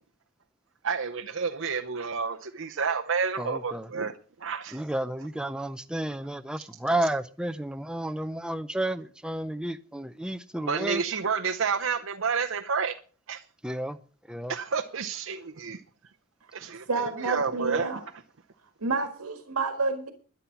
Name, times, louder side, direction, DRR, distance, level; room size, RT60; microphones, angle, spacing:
voice 1, 0.8-4.2 4.4-4.6 10.7-13.0 13.3-13.4 14.5-15.8 16.5-17.9, right 5 dB, 65° right, 0.7 m, -30 dB
voice 2, 3.4-3.9 4.7-11.0 13.6-14.0 14.3-14.5, right 1 dB, 5° right, 0.5 m, -31 dB
voice 3, 16.9-18.0 18.8-20.1, right 3 dB, 90° right, 1.7 m, -29 dB
12.5 x 11.0 x 5.8 m
head